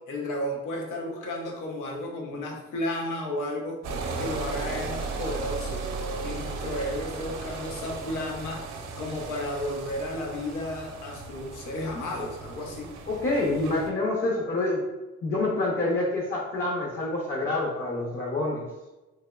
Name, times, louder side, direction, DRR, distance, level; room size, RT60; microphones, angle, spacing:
voice 1, 0.0-3.8 4.2-5.9 6.2-8.7 9.0-12.9, left 1 dB, 85° left, 0 dB, 0.8 m, -33 dB
sound 1, 3.8-13.9, right 4 dB, 65° right, 0.6 m, -36 dB
voice 2, 13.1-14.8 15.2-18.6, left 2 dB, 40° left, -2 dB, 0.7 m, -27 dB
3.3 x 2.9 x 2.3 m, 1.1 s
cardioid pair, 90°, 30 cm